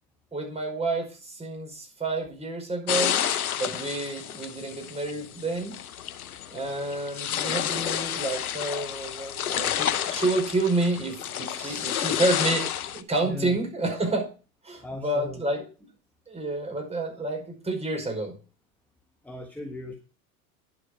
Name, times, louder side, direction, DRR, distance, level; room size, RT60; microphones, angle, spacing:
voice 1, 0.3-3.2 3.6-5.8 6.5-14.3 14.6-15.6 16.3-18.4, right 2 dB, 15° right, 2 dB, 5.3 m, -29 dB
sound 1, 2.9-13.0, left 10 dB, 85° left, 0.8 m, -30 dB
voice 2, 11.5-12.0 13.2-13.6 14.8-15.4 19.2-19.9, left 2 dB, 5° left, 4 dB, 1.4 m, -38 dB
10.5 x 7.6 x 5.0 m, 0.35 s
hypercardioid pair, 95°, 43 cm